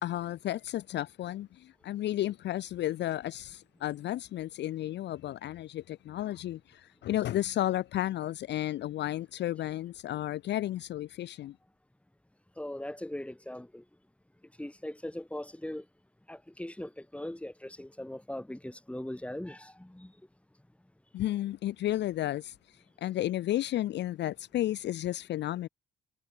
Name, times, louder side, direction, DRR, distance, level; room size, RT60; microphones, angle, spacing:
voice 1, 0.0-11.5 21.1-22.6 23.0-25.7, left 13 dB, 60° left, 0.4 m, -33 dB
voice 2, 12.6-13.8 14.6-15.8 16.3-20.1, left 1 dB, 5° left, 4.2 m, -40 dB
cardioid pair, 90°, 20 cm